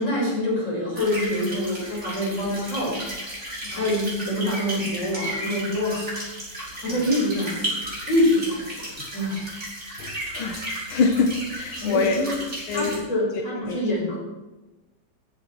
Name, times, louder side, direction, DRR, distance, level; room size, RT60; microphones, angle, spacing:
voice 1, 0.0-3.1 3.7-6.1 6.5-8.8 9.1-9.4 11.8-12.3 12.7-14.2, left 1 dB, 35° left, -3 dB, 5.4 m, -25 dB
sound 1, 0.9-13.0, right 1 dB, 35° right, 6.1 m, -34 dB
voice 2, 10.0-10.6 10.9-12.3 12.7-13.0 13.7-13.8, left 4 dB, 85° left, 4 dB, 2.0 m, -25 dB
14.5 x 14.0 x 4.5 m, 1.1 s
omnidirectional pair, 2.2 m